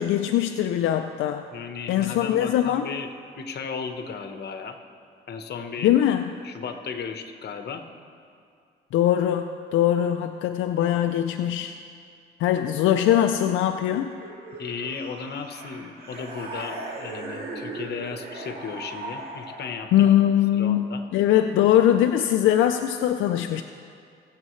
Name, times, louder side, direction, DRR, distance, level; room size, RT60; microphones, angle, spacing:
voice 1, 0.0-1.5 1.9-2.9 5.8-6.3 8.9-11.8 12.4-14.1 19.9-20.8 21.1-23.6, left 11 dB, 80° left, 6 dB, 0.5 m, -21 dB
voice 2, 1.5-3.1 3.3-4.8 5.3-5.9 6.4-7.8 14.6-20.1 20.5-21.0, left 5 dB, 55° left, 6 dB, 1.1 m, -35 dB
sound 1, 14.1-20.0, right 2 dB, 50° right, 2.1 m, -38 dB
21.5 x 7.5 x 3.2 m, 2.3 s
cardioid pair, 90°, 20 cm